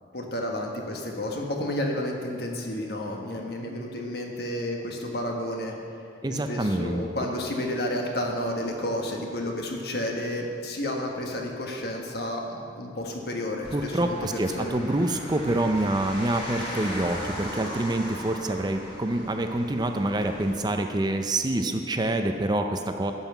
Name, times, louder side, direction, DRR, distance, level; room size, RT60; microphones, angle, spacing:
voice 1, 0.1-5.7 6.3-14.8, left 1 dB, 60° left, 1 dB, 1.4 m, -31 dB
voice 2, 6.2-7.0 13.7-23.1, right 1 dB, 20° right, 6 dB, 0.5 m, -26 dB
sound 1, 13.6-20.6, left 1 dB, 30° left, 2.9 m, -38 dB
11.5 x 5.7 x 8.0 m, 2.4 s
head